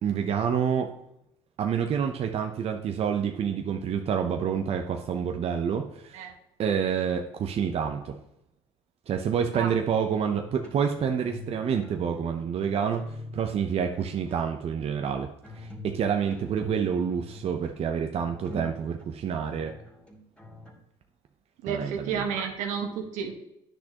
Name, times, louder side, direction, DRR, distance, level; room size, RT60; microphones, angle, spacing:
voice 1, 0.0-0.9 1.6-6.3 6.6-8.2 9.1-15.3 15.5-19.7 21.7-22.3, right 7 dB, 50° right, 4 dB, 0.7 m, -28 dB
sound 1, 10.0-11.6 11.8-13.6 14.1-14.6 15.1-20.7, left 1 dB, 5° left, 2.3 m, -44 dB
voice 2, 21.6-23.3, right 7 dB, 80° right, 3 dB, 1.5 m, -31 dB
10.0 x 6.3 x 2.9 m, 0.82 s
supercardioid pair, 75°, 13 cm